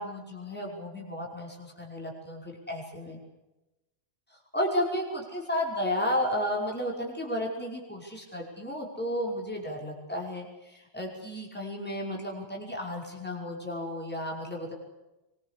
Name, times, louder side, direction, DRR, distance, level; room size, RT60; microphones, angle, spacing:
voice 1, 0.0-3.2 4.5-14.7, left 1 dB, 10° left, -1 dB, 5.4 m, -33 dB
24.5 x 21.5 x 8.4 m, 1.0 s
omnidirectional pair, 1.2 m